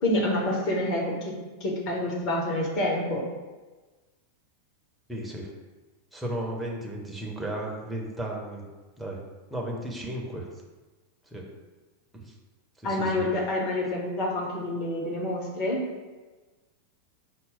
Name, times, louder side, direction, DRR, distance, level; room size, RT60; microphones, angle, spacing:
voice 1, 0.0-1.3 1.6-3.2 12.8-15.8, left 1 dB, 40° left, -1 dB, 1.1 m, -27 dB
voice 2, 5.1-5.5 6.1-8.7 9.0-9.2 9.5-10.5 11.3-11.4 12.1-12.3 12.8-13.3, right 1 dB, 5° right, -2 dB, 0.8 m, -34 dB
5.2 x 2.0 x 4.1 m, 1.3 s
figure-of-eight pair, 90°, 0 cm